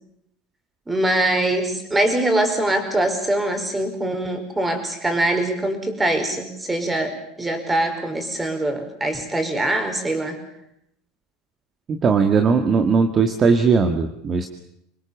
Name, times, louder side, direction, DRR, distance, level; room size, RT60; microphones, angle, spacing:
voice 1, 0.9-10.4, right 1 dB, 15° right, 7 dB, 5.1 m, -23 dB
voice 2, 11.9-14.5, right 5 dB, 30° right, 7 dB, 1.8 m, -18 dB
25.5 x 20.5 x 7.3 m, 0.79 s
supercardioid pair, 115°, 0 cm